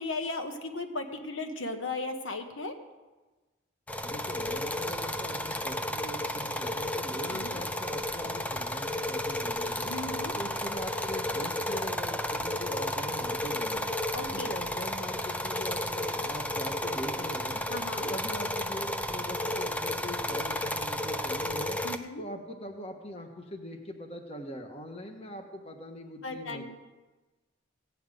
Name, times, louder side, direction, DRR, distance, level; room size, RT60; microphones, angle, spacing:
voice 1, 0.0-2.7 7.3-7.6 9.9-10.3 14.1-14.5 17.7-18.1 21.8-22.2 26.2-26.6, left 2 dB, 75° left, 5 dB, 1.3 m, -36 dB
sound 1, 3.9-22.0, left 1 dB, 5° left, 0.4 m, -32 dB
voice 2, 4.0-9.9 10.3-13.9 14.3-17.6 18.0-21.8 22.2-26.6, equal, 30° left, 4 dB, 1.2 m, -41 dB
16.0 x 5.8 x 9.1 m, 1.2 s
head